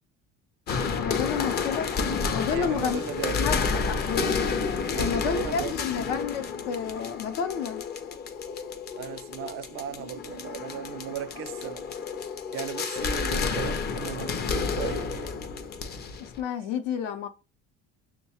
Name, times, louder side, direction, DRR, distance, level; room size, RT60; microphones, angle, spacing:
sound 1, 0.7-16.4, left 5 dB, 35° left, 0.5 m, -30 dB
voice 1, 0.9-1.9 2.3-3.0 3.4-3.6 3.9-4.4 5.0-7.8 16.2-17.3, left 7 dB, 85° left, 0.7 m, -30 dB
voice 2, 2.5-3.5 4.9-5.8 9.0-11.9 12.5-15.4, right 8 dB, 45° right, 0.4 m, -37 dB
6.3 x 2.1 x 2.8 m
cardioid pair, 135°, 31 cm